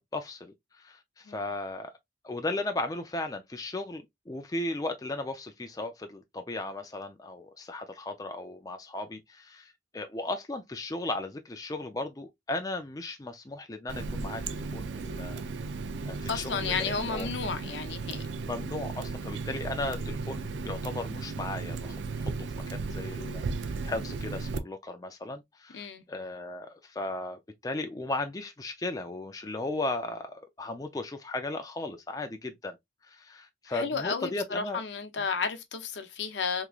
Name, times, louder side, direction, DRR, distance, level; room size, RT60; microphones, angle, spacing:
voice 1, 0.0-1.9 2.2-15.4 16.0-17.3 18.4-22.2 22.7-32.8 33.1-34.8, left 2 dB, 20° left, 0.4 m, -36 dB
Water tap faucet, 13.9-24.6, right 4 dB, 85° right, 0.4 m, -35 dB
voice 2, 16.3-18.2 25.7-26.0 33.7-36.7, left 5 dB, 80° left, 0.7 m, -32 dB
3.6 x 3.0 x 2.3 m
head